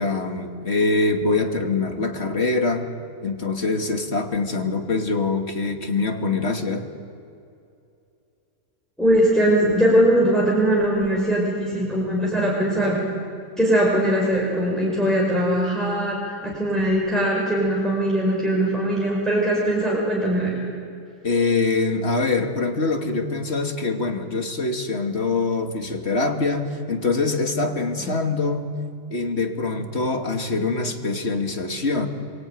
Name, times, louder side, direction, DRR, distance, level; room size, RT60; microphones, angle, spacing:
voice 1, 0.0-2.9 3.2-6.9 21.2-28.7 29.1-32.1, left 3 dB, 45° left, 4 dB, 2.5 m, -24 dB
voice 2, 9.0-13.1 13.6-20.5 28.0-28.2, right 1 dB, ahead, -4 dB, 5.6 m, -21 dB
26.0 x 23.0 x 9.4 m, 2.5 s
omnidirectional pair, 1.6 m